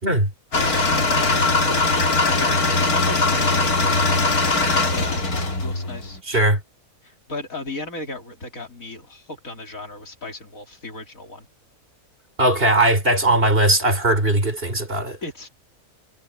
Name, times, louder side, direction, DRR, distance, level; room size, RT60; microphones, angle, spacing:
sound 1, 0.5-6.2, left 3 dB, 85° left, 3.4 m, -20 dB
voice 1, 0.5-4.0 4.4-5.3 5.6-6.2 7.0-11.5 15.2-15.5, left 2 dB, 65° left, 3.8 m, -36 dB
voice 2, 6.3-6.6 12.4-15.2, right 1 dB, 40° right, 4.1 m, -19 dB
omnidirectional pair, 1.5 m